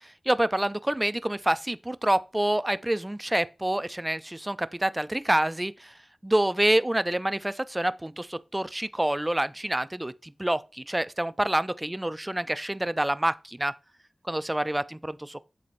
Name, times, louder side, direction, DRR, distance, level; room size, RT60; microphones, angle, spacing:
voice 1, 0.3-5.9 6.2-13.7 14.2-15.4, right 1 dB, 15° right, 0.5 m, -27 dB
7.5 x 4.2 x 3.9 m
wide cardioid pair, 60°, 0 cm